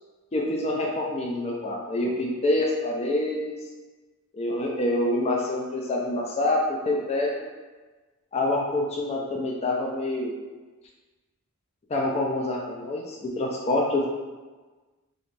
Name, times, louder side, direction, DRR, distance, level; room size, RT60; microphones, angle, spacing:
voice 1, 0.3-3.6 4.3-7.3 8.3-10.3 11.9-14.1, left 1 dB, 30° left, -1 dB, 0.4 m, -26 dB
3.1 x 2.5 x 3.2 m, 1.3 s
head